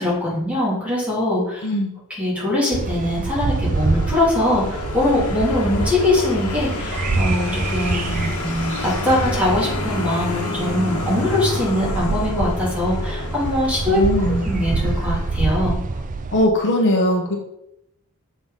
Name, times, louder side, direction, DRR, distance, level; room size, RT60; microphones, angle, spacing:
voice 1, 0.0-1.7 2.1-14.0 14.4-15.8, left 1 dB, 5° right, -6 dB, 2.9 m, -22 dB
voice 2, 1.6-1.9 13.9-14.4 16.3-17.4, left 1 dB, 55° left, 1 dB, 1.2 m, -19 dB
sound 1, 2.7-16.5, right 3 dB, 35° right, 0.4 m, -27 dB
Vehicle, 3.5-15.8, left 1 dB, 90° left, 1.4 m, -28 dB
7.0 x 3.9 x 5.1 m, 0.81 s
head